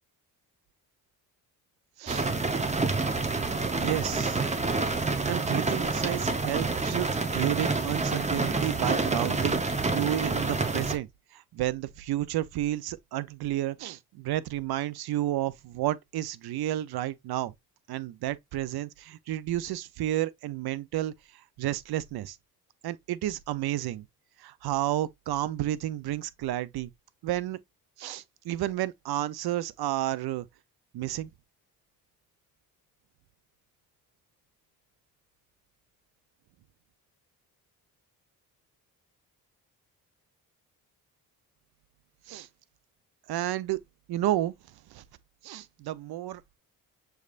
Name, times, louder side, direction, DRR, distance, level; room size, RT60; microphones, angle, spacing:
sound 1, 2.1-11.0, right 3 dB, 20° right, 0.8 m, -28 dB
voice 1, 3.8-4.4 5.2-17.5 17.9-22.4 22.8-24.1 24.4-26.9 27.2-27.6 28.0-30.5 30.9-31.3 42.3-42.5 43.3-43.8 44.1-44.5 44.9-45.0 45.4-46.6, right 14 dB, 75° right, 0.6 m, -31 dB
6.3 x 3.3 x 2.4 m
cardioid pair, 80°, 38 cm